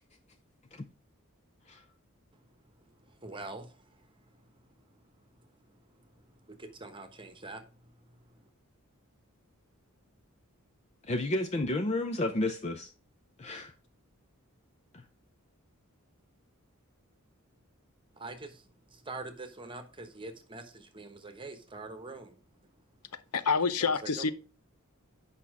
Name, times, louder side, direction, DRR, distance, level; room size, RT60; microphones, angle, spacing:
voice 1, 3.0-4.0 5.4-5.5 6.0-6.1 6.4-7.6 8.3-8.4 18.1-22.4 23.8-24.3, right 3 dB, 25° right, 1.1 m, -45 dB
voice 2, 11.0-12.9 13.4-13.7 14.9-15.0, left 2 dB, 30° left, 0.6 m, -31 dB
voice 3, 23.1-24.3, left 5 dB, 85° left, 0.8 m, -28 dB
8.6 x 5.7 x 4.8 m
head